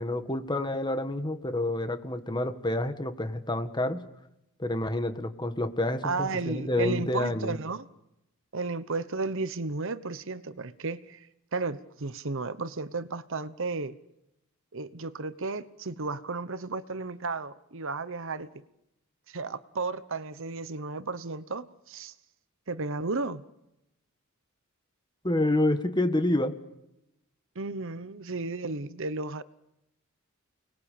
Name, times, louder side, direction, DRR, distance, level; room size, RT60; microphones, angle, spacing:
voice 1, 0.0-4.0 4.6-7.6 25.2-26.6, left 1 dB, 20° left, 1.8 m, -28 dB
voice 2, 6.0-7.9 8.5-14.0 14.7-18.5 19.3-22.1 22.7-23.4 27.5-29.4, right 3 dB, 60° right, 1.0 m, -33 dB
30.0 x 21.0 x 8.5 m
head